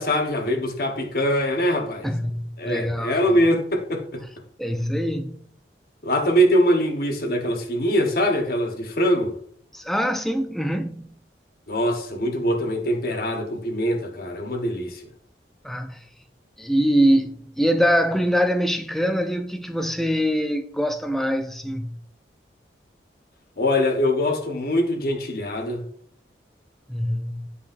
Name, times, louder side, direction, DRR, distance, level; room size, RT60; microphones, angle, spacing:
voice 1, 0.0-2.1 2.6-4.2 6.0-9.3 11.7-15.0 23.6-25.9, equal, 55° left, 1.1 m, -23 dB
voice 2, 2.0-3.4 4.6-5.4 9.7-11.1 15.6-16.0 16.6-21.9 26.9-27.5, equal, ahead, 0.4 m, -23 dB
8.3 x 5.3 x 2.5 m
head